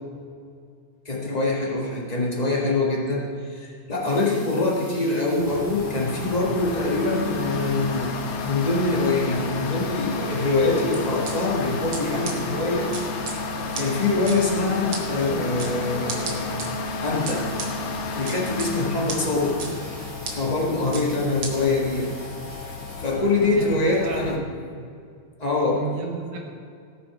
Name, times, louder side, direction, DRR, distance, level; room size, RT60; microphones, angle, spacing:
voice 1, 1.0-13.5 13.7-17.5 18.1-19.6 20.3-22.1 23.0-24.4 25.4-25.8, left 2 dB, 50° left, -3 dB, 0.4 m, -24 dB
sound 1, 4.0-23.1, right 1 dB, 30° right, 3.8 m, -45 dB
sound 2, 5.4-24.4, left 3 dB, 70° left, 1.3 m, -32 dB
sound 3, 10.9-11.3 11.9-12.0 12.3-12.4 12.9-13.4 13.8-13.9 14.3-14.4 14.9-15.0 15.6-15.7 16.1-16.7 17.3-17.7 18.3-18.7 19.1-19.2 19.6-19.7 20.3-20.4 20.9-21.0 21.4-21.5, right 5 dB, 50° right, 2.0 m, -32 dB
voice 2, 23.3-24.5 25.7-26.4, right 5 dB, 80° right, 1 dB, 2.5 m, -33 dB
17.5 x 6.1 x 4.8 m, 2.3 s
omnidirectional pair, 3.5 m